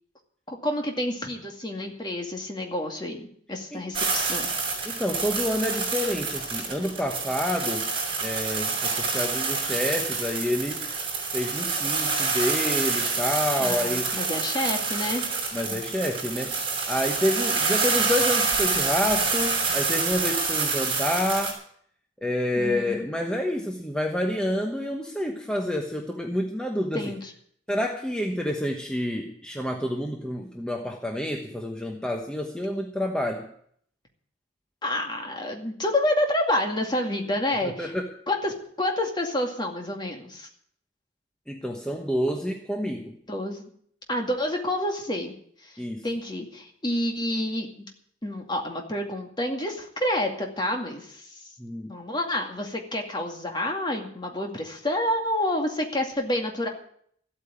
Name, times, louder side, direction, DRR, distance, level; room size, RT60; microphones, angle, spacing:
voice 1, 0.5-4.5 13.6-15.2 15.7-15.8 22.6-23.1 26.9-27.3 34.8-37.9 38.3-40.5 43.3-43.6 44.1-45.4 45.6-47.7 48.2-51.4 51.9-56.7, left 1 dB, 25° left, 2 dB, 2.3 m, -29 dB
sound 1, 3.9-21.5, right 4 dB, 30° right, 5.2 m, -27 dB
voice 2, 4.8-7.9 8.2-10.9 11.3-14.1 15.5-16.6 16.9-21.6 22.2-27.1 27.7-33.5 37.6-38.1 41.5-43.2 45.8-46.1 51.6-52.0, left 1 dB, 5° left, 2 dB, 1.1 m, -28 dB
14.5 x 8.8 x 8.7 m, 0.63 s
head